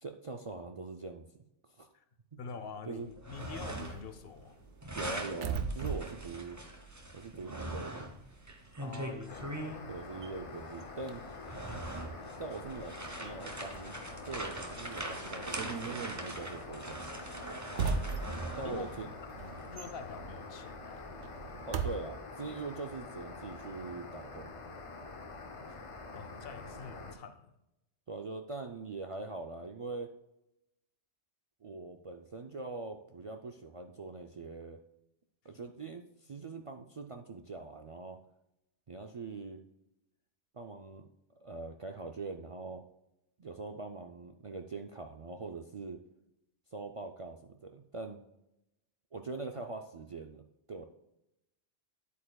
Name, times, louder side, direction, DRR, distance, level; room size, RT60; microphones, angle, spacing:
voice 1, 0.0-1.2 1.7-1.9 2.3-2.6 2.9-3.1 4.9-6.6 7.1-8.1 9.9-11.2 12.4-14.0 14.2-17.0 18.5-19.1 21.7-24.5 28.1-30.1 31.6-34.8 35.4-38.2 38.9-39.6 40.5-41.1 41.4-42.8 43.4-46.0 46.7-48.2 49.1-50.4 50.7-50.8, right 3 dB, 55° right, 0.3 m, -42 dB
voice 2, 2.4-4.6 8.8-9.7 18.6-18.9 19.7-21.3 26.1-27.5, left 5 dB, 60° left, 0.9 m, -46 dB
sound 1, 3.1-4.2 4.4-9.8 10.7-10.8 11.3-19.1, right 1 dB, 15° right, 0.8 m, -41 dB
sound 2, 3.4-7.8 8.1-22.0, right 5 dB, 85° right, 1.0 m, -41 dB
sound 3, 9.3-27.1, left 3 dB, 35° left, 0.6 m, -46 dB
10.0 x 8.2 x 2.3 m
omnidirectional pair, 1.2 m